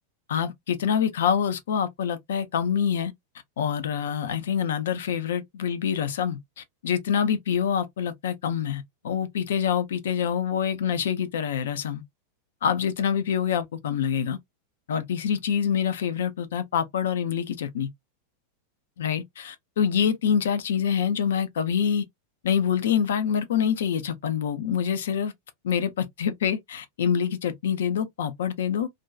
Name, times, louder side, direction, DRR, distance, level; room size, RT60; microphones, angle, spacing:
voice 1, 0.3-3.1 3.6-12.0 12.6-14.4 14.9-17.9 19.0-22.0 22.4-25.3 25.6-28.9, left 8 dB, 60° left, 0.4 m, -26 dB
2.5 x 2.2 x 2.3 m
figure-of-eight pair, 90°, 0 cm